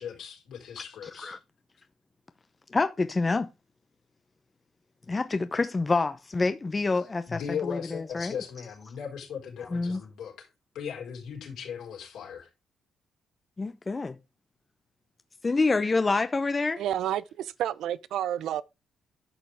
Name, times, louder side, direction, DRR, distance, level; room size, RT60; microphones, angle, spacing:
voice 1, 0.0-1.4 7.3-10.5 10.7-12.5, left 7 dB, 75° left, 4.2 m, -38 dB
voice 2, 1.0-1.4 2.7-3.5 5.1-8.4 9.7-10.0 13.6-14.2 15.4-16.8, left 3 dB, 25° left, 0.7 m, -27 dB
voice 3, 16.8-18.6, right 11 dB, 80° right, 0.6 m, -30 dB
11.0 x 6.0 x 3.5 m
cardioid pair, 90°, 0 cm